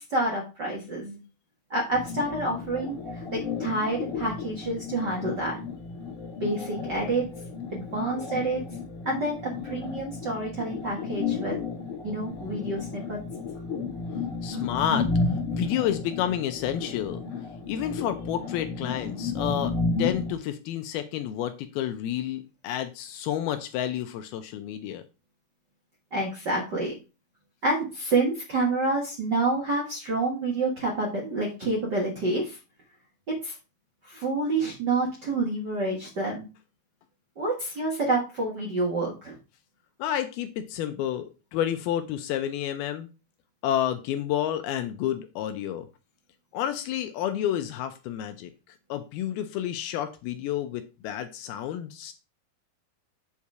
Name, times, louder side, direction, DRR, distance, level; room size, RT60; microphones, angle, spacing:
voice 1, 0.1-1.2 1.7-5.6 6.4-7.2 7.7-8.6 9.0-11.6 12.0-13.2 14.5-14.6 26.1-27.0 27.6-32.6 33.4-33.5 34.0-36.5 37.4-39.4, right 2 dB, 60° right, -3 dB, 1.1 m, -28 dB
sound 1, 1.9-20.3, left 4 dB, 45° left, 2.1 m, -32 dB
voice 2, 14.4-15.1 15.5-17.2 17.7-19.7 20.0-25.0 40.0-43.1 43.6-45.9 46.5-52.2, left 11 dB, 80° left, 9 dB, 2.4 m, -30 dB
8.3 x 4.3 x 4.8 m, 0.30 s
omnidirectional pair, 4.8 m